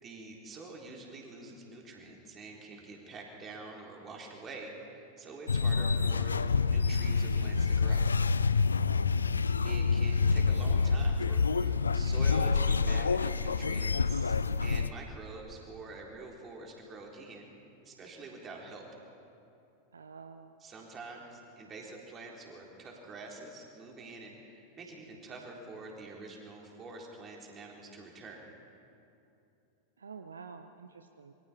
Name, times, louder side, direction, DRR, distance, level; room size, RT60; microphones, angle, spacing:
voice 1, 0.0-8.1 9.6-14.4 14.6-17.5 17.8-18.9 20.6-28.5, right 3 dB, 25° right, -1 dB, 3.9 m, -46 dB
sound 1, 5.5-14.9, left 4 dB, 75° left, 0.5 m, -27 dB
voice 2, 9.1-9.4 19.9-20.5 30.0-31.3, right 5 dB, 70° right, 9 dB, 0.7 m, -48 dB
26.5 x 23.0 x 4.5 m, 2.7 s
figure-of-eight pair, 90°, 0 cm